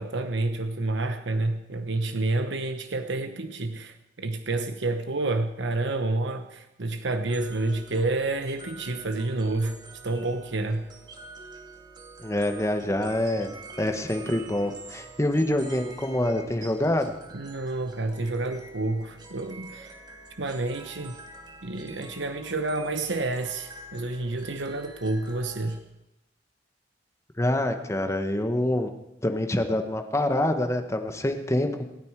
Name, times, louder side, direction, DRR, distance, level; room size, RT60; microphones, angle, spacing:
voice 1, 0.0-9.8 10.0-10.9 17.3-20.0 20.4-21.1 21.6-25.8, right 2 dB, 85° right, 8 dB, 1.0 m, -29 dB
sound 1, 7.3-25.8, right 3 dB, 25° right, 2.3 m, -47 dB
voice 2, 12.2-13.5 13.8-17.1 27.4-28.9 29.2-31.8, left 1 dB, 15° left, 6 dB, 1.4 m, -26 dB
27.0 x 9.7 x 4.8 m, 0.93 s
head